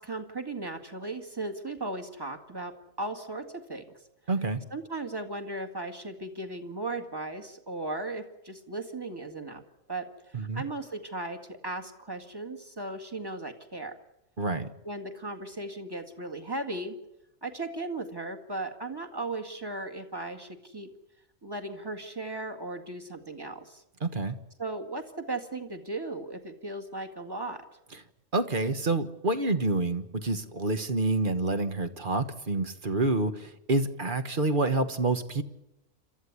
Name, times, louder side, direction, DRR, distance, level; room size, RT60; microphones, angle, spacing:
voice 1, 0.0-3.8 4.7-9.6 9.9-13.9 14.8-17.0 17.4-20.9 21.4-23.8 24.6-27.6, right 2 dB, 15° right, 5 dB, 1.9 m, -36 dB
voice 2, 4.3-4.6 10.3-10.6 14.4-14.7 24.0-24.4 28.3-35.4, right 2 dB, 40° right, 10 dB, 1.4 m, -28 dB
28.0 x 13.5 x 9.7 m, 0.88 s
omnidirectional pair, 1.5 m